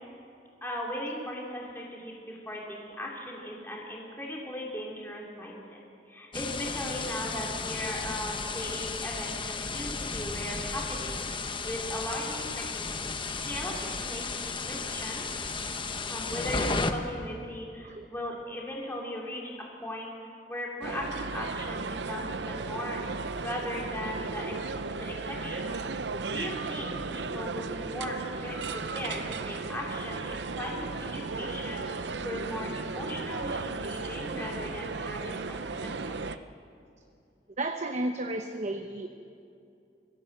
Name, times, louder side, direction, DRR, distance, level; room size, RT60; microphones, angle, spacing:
voice 1, 0.6-5.8 6.1-9.3 9.7-15.3 16.1-19.5 19.8-20.1 20.5-23.1 23.4-25.7 26.2-28.2 28.4-28.6 28.9-36.4, left 1 dB, 15° left, -3 dB, 3.0 m, -38 dB
sound 1, 6.3-16.9, left 4 dB, 30° left, 1.0 m, -34 dB
sound 2, 20.8-36.4, right 4 dB, 75° right, 0.7 m, -35 dB
voice 2, 37.6-39.1, right 2 dB, 40° right, 5 dB, 0.9 m, -32 dB
24.0 x 15.5 x 7.9 m, 2.6 s
head